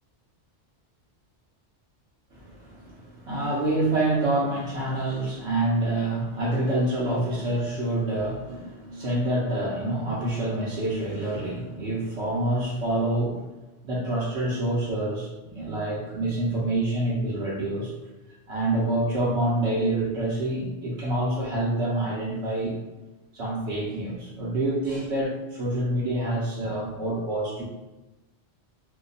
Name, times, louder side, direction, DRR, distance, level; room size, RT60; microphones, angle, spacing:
voice 1, 2.3-13.5 13.8-17.9 18.5-22.8 23.3-27.6, right 1 dB, 75° right, -6 dB, 1.0 m, -27 dB
2.8 x 2.2 x 3.9 m, 1.1 s
omnidirectional pair, 1.1 m